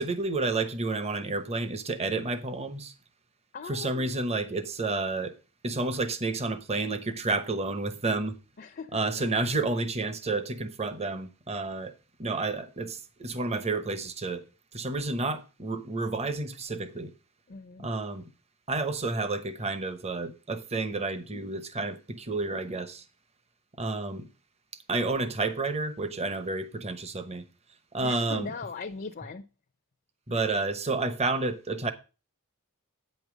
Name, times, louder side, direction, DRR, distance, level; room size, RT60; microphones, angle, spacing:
voice 1, 0.0-2.9 3.7-5.4 5.6-8.4 8.9-11.9 12.2-14.4 14.7-17.1 17.8-18.3 18.7-23.0 23.8-24.3 24.9-27.4 27.9-28.5 30.3-31.9, right 3 dB, 30° right, 0.9 m, -30 dB
voice 2, 3.5-4.5 8.6-9.3 17.5-17.9 28.0-29.5, left 4 dB, 40° left, 0.6 m, -40 dB
8.8 x 5.4 x 6.2 m
head